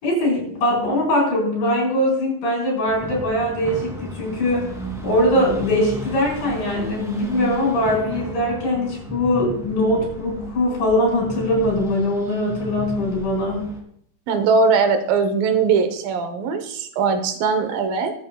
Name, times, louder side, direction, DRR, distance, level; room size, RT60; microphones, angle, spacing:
voice 1, 0.0-4.7 5.0-13.7, left 1 dB, 75° left, -3 dB, 6.5 m, -21 dB
sound 1, 2.9-13.8, equal, ahead, 2.0 m, -34 dB
voice 2, 14.3-18.1, right 5 dB, 85° right, 7 dB, 2.9 m, -20 dB
22.5 x 8.5 x 2.3 m, 0.66 s
omnidirectional pair, 3.9 m